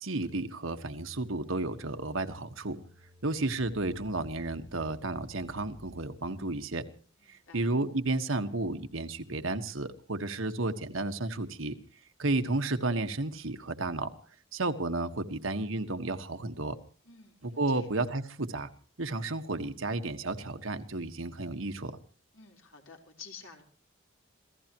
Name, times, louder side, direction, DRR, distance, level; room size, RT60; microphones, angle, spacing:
voice 1, 0.0-2.8 3.2-6.8 7.3-11.8 12.2-14.1 14.5-16.8 17.4-18.7 19.0-22.0, right 2 dB, 90° right, 7 dB, 1.6 m, -32 dB
sound 1, 0.9-6.3, equal, ahead, 7.7 m, -55 dB
voice 2, 7.2-7.7 17.0-17.9 22.3-23.6, left 5 dB, 85° left, 3 dB, 4.2 m, -51 dB
27.0 x 16.5 x 3.1 m, 0.41 s
head